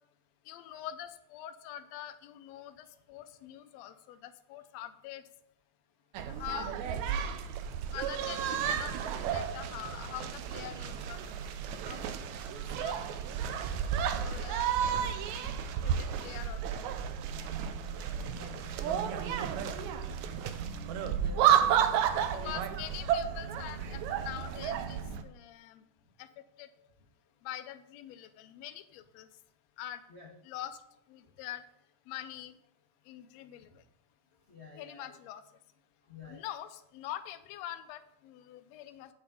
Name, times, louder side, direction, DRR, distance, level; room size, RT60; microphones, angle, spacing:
voice 1, 0.5-5.2 6.3-6.7 7.1-7.3 7.9-11.2 11.9-12.2 12.5-13.0 14.2-14.7 15.4-16.6 18.4-18.5 22.4-25.8 26.2-26.3 26.6-26.7 27.4-29.3 29.8-30.0 30.4-30.8 31.1-31.6 32.1-32.5 33.1-33.7 34.8-35.4 36.3-39.1, left 12 dB, 75° left, 8 dB, 1.7 m, -44 dB
sound 1, 6.1-25.2, right 8 dB, 80° right, 2.0 m, -32 dB
voice 2, 17.8-20.4 21.0-22.5 30.1-30.3 34.5-35.1 36.1-36.4, left 3 dB, 55° left, -2 dB, 0.7 m, -50 dB
8.3 x 7.4 x 4.9 m, 0.74 s
omnidirectional pair, 3.5 m